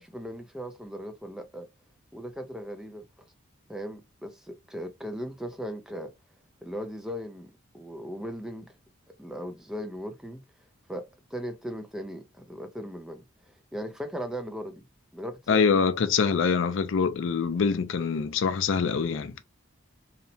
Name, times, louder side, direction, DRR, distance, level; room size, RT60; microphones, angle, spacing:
voice 1, 0.0-1.7 2.1-3.0 3.7-6.1 6.6-8.7 9.2-10.4 10.9-11.1 11.3-14.8 15.1-15.7, equal, 5° right, 0.4 m, -38 dB
voice 2, 15.5-19.4, left 5 dB, 65° left, 0.4 m, -24 dB
2.8 x 2.1 x 2.6 m
head